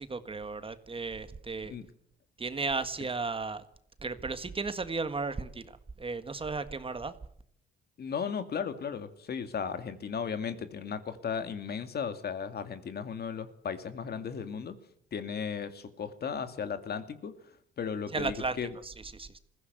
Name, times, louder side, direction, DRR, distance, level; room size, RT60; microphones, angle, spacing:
voice 1, 0.0-1.7 2.4-3.6 4.0-7.1 18.1-18.6 18.8-19.4, right 4 dB, 25° right, 11 dB, 1.7 m, -35 dB
voice 2, 8.0-14.8 15.1-18.7, left 6 dB, 55° left, 10 dB, 2.3 m, -36 dB
21.0 x 16.0 x 8.0 m, 0.65 s
cardioid pair, 90°, 20 cm